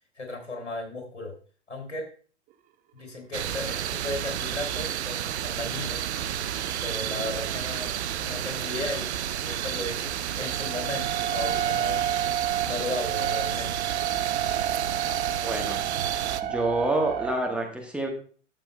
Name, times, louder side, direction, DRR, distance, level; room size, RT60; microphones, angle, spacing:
voice 1, 0.2-1.3 1.7-2.1 2.9-6.1 6.8-12.1 12.6-13.9, left 2 dB, 80° left, 3 dB, 3.2 m, -35 dB
sound 1, 3.3-16.4, right 10 dB, 65° right, 0.6 m, -31 dB
sound 2, 4.2-4.5 5.4-5.7 6.0-6.6 7.2-7.7 9.6-17.4, right 10 dB, 20° right, 0.6 m, -30 dB
voice 2, 15.4-15.8 16.4-18.1, right 1 dB, 5° right, 0 dB, 1.2 m, -27 dB
12.5 x 6.9 x 2.2 m, 0.42 s
figure-of-eight pair, 105°, 36 cm